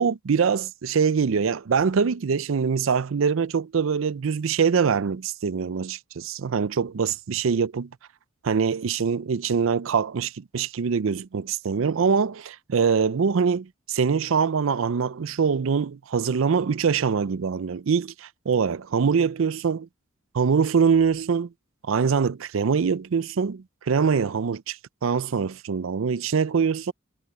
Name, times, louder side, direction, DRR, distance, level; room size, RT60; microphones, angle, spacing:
voice 1, 0.0-7.9 8.4-19.9 20.3-21.5 21.9-26.9, right 6 dB, 65° right, 0.5 m, -24 dB
head